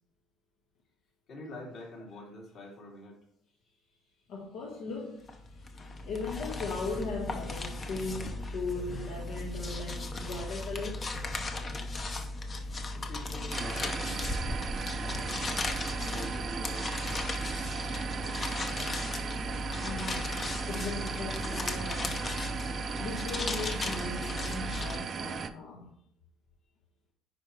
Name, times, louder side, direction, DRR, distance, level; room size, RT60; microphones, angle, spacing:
voice 1, 1.3-3.2 12.9-14.4 15.0-15.5 16.1-17.0 18.2-18.9, left 1 dB, 50° left, 2.7 m, -46 dB
voice 2, 4.3-11.1 19.8-22.5 23.0-25.9, left 3 dB, 70° left, 1.6 m, -38 dB
sound 1, 5.3-25.0, left 2 dB, 25° left, 0.8 m, -36 dB
sound 2, 13.5-25.5, right 6 dB, 35° right, 0.5 m, -37 dB
10.0 x 4.7 x 3.2 m
cardioid pair, 160°, 0 cm